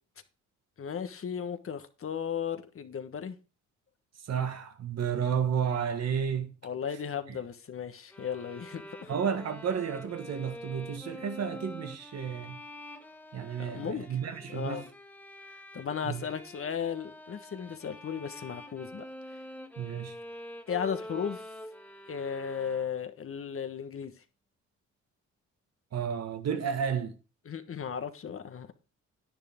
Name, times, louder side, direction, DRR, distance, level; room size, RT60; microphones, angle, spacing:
voice 1, 0.8-3.4 6.6-9.1 13.6-14.1 14.5-14.9 15.7-19.1 19.3-19.4 20.7-21.5 22.1-24.1 27.4-28.7, left 7 dB, 45° left, 1.4 m, -35 dB
voice 2, 4.2-6.5 9.1-12.6 13.3-14.8 16.0-16.2 19.8-20.1 25.9-27.2, right 7 dB, 60° right, 1.7 m, -32 dB
sound 1, 8.1-23.2, left 1 dB, 5° left, 1.3 m, -46 dB
10.5 x 10.5 x 3.7 m
cardioid pair, 90°, 30 cm